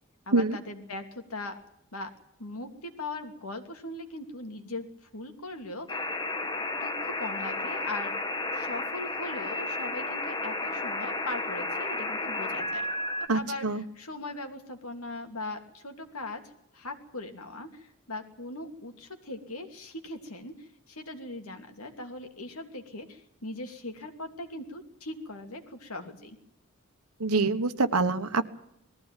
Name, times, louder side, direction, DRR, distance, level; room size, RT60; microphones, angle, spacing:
voice 1, 0.3-1.6 1.9-2.1 2.4-4.9 5.1-6.0 6.8-8.1 8.5-12.9 13.3-16.4 16.7-26.4, left 2 dB, 90° left, 5 dB, 2.8 m, -39 dB
sound 1, 5.9-13.3, left 2 dB, 20° left, 1.4 m, -32 dB
voice 2, 13.3-13.8 27.2-28.4, right 3 dB, 90° right, 9 dB, 1.4 m, -25 dB
20.0 x 15.0 x 9.2 m, 0.79 s
head